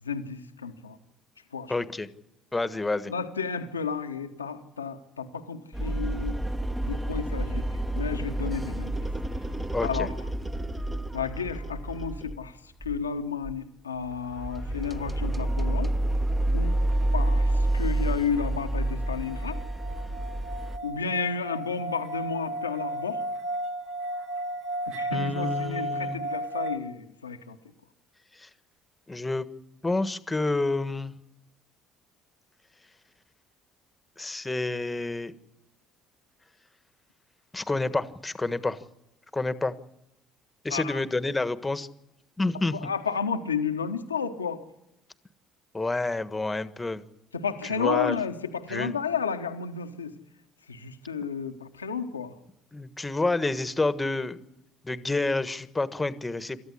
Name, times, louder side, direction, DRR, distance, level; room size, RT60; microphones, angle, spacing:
voice 1, 0.0-1.0 1.5-1.7 3.1-6.4 6.8-9.1 9.8-10.1 11.1-15.9 16.5-16.8 17.1-19.6 20.8-23.2 24.9-27.6 40.7-41.0 42.8-44.6 47.3-50.1 50.7-52.3, left 6 dB, 90° left, 6 dB, 1.1 m, -32 dB
voice 2, 1.7-2.1 2.5-3.1 9.7-10.1 25.1-26.2 28.4-28.5 29.1-29.5 29.8-31.1 34.2-35.3 37.5-38.8 39.3-39.8 40.6-41.9 42.4-42.8 45.7-47.0 47.7-48.2 48.7-48.9 52.7-54.4 54.8-56.6, left 2 dB, 15° left, 12 dB, 1.5 m, -28 dB
sound 1, 5.7-12.5 12.8-13.1 13.4-13.6 14.0-20.8, right 1 dB, 15° right, 1.4 m, -29 dB
sound 2, 18.4-26.8, right 1 dB, 55° right, 2.2 m, -34 dB
27.5 x 14.0 x 9.8 m, 0.89 s
figure-of-eight pair, 55°, 0 cm